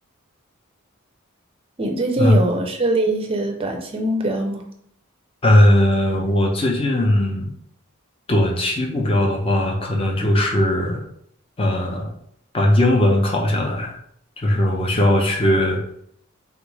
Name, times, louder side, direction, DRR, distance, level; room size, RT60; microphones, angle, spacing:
voice 1, 1.8-4.7, right 1 dB, 25° right, 3 dB, 0.4 m, -22 dB
voice 2, 5.4-7.5 8.3-11.0 11.6-12.1 12.5-13.9 14.4-15.8, left 1 dB, 25° left, 1 dB, 0.5 m, -18 dB
3.4 x 2.4 x 3.1 m, 0.69 s
head